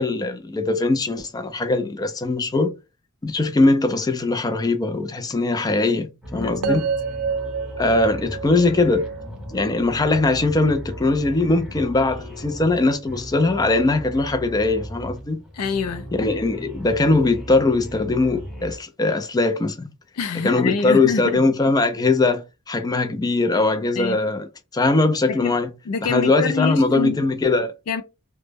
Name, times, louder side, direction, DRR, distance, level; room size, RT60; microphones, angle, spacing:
voice 1, 0.0-2.8 3.2-6.8 7.8-9.1 9.5-15.4 16.1-19.9 20.4-25.7 26.0-27.7, left 3 dB, 20° left, 0.3 m, -21 dB
sound 1, 6.2-18.8, equal, ahead, 0.7 m, -37 dB
voice 2, 6.4-6.8 15.5-16.1 20.2-21.4 24.0-24.2 25.3-25.5 25.9-27.2 27.9-28.0, left 5 dB, 85° left, 0.4 m, -26 dB
sound 2, 6.6-10.7, right 5 dB, 75° right, 0.5 m, -29 dB
2.1 x 2.1 x 3.2 m
head